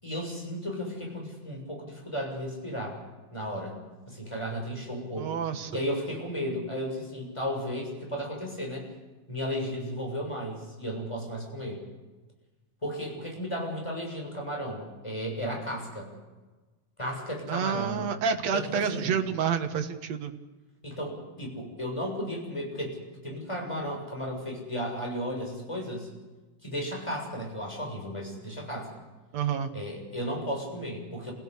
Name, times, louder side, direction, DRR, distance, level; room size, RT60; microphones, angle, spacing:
voice 1, 0.0-3.0 3.3-3.8 4.1-5.3 5.7-8.9 9.3-11.8 12.8-16.1 17.0-18.1 18.5-19.2 20.8-23.0 23.2-26.1 26.6-28.9 29.7-31.3, equal, 10° left, 0 dB, 7.0 m, -34 dB
voice 2, 5.2-5.8 17.5-20.3 29.3-29.7, right 7 dB, 60° right, 7 dB, 2.6 m, -29 dB
29.5 x 16.5 x 8.3 m, 1.2 s
omnidirectional pair, 3.6 m